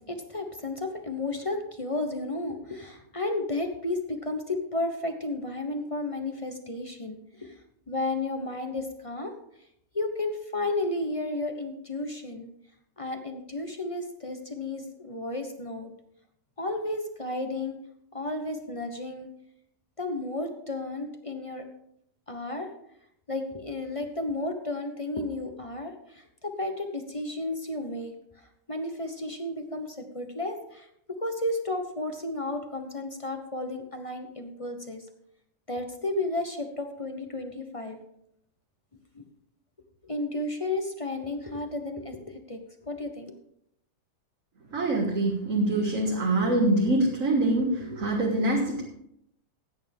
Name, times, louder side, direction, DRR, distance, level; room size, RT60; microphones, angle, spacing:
voice 1, 0.1-7.5 7.9-9.3 9.9-12.5 13.0-15.9 16.6-17.8 18.1-19.3 20.0-21.6 22.3-22.7 23.3-28.1 28.7-30.9 31.2-35.1 35.7-38.0 39.1-39.2 40.0-43.3, left 2 dB, 25° left, 5 dB, 0.7 m, -33 dB
voice 2, 44.7-48.8, right 2 dB, 45° right, -1 dB, 1.8 m, -24 dB
16.0 x 9.1 x 3.6 m, 0.74 s
omnidirectional pair, 2.1 m